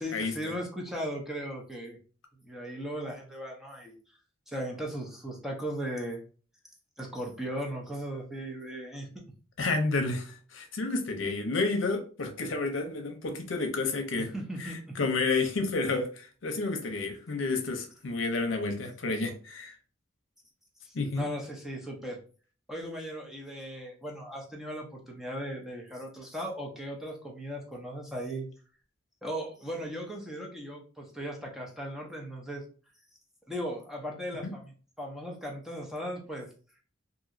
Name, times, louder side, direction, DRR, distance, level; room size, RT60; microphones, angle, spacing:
voice 1, 0.0-2.0 2.4-3.9 4.5-6.2 7.0-9.1 14.3-14.9 20.8-22.2 22.7-28.5 29.2-32.6 33.5-36.5, equal, ahead, -1 dB, 0.6 m, -37 dB
voice 2, 9.6-14.3 14.6-19.7 20.9-21.3 34.4-34.5, left 3 dB, 80° left, 5 dB, 0.6 m, -30 dB
2.9 x 2.7 x 2.5 m, 0.39 s
head